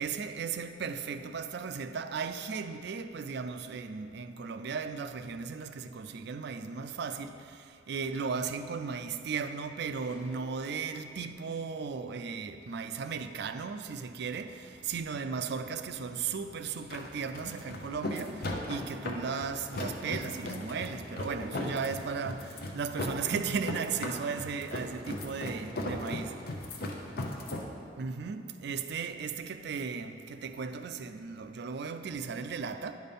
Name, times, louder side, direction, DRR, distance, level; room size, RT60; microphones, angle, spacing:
voice 1, 0.0-7.4 7.9-22.5 22.7-26.4 28.0-32.9, right 5 dB, 65° right, 0.4 m, -36 dB
sound 1, 9.9-11.9, left 1 dB, 15° left, 0.7 m, -53 dB
sound 2, 14.3-27.7, left 1 dB, 55° left, 0.8 m, -38 dB
10.5 x 4.2 x 5.3 m
head